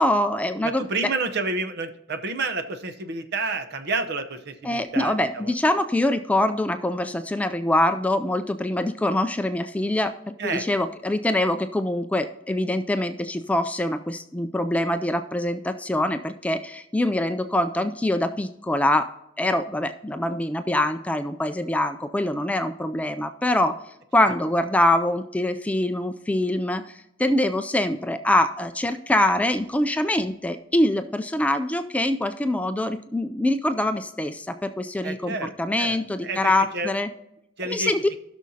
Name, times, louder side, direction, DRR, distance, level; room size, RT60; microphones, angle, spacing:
voice 1, 0.0-0.9 4.6-37.1 37.6-38.0, left 1 dB, 5° left, 8 dB, 0.3 m, -24 dB
voice 2, 0.6-5.5 10.4-10.7 35.0-35.5 35.8-36.4 36.7-36.9 37.6-37.9, right 3 dB, 55° right, 9 dB, 0.8 m, -29 dB
16.5 x 6.2 x 2.8 m, 0.85 s
head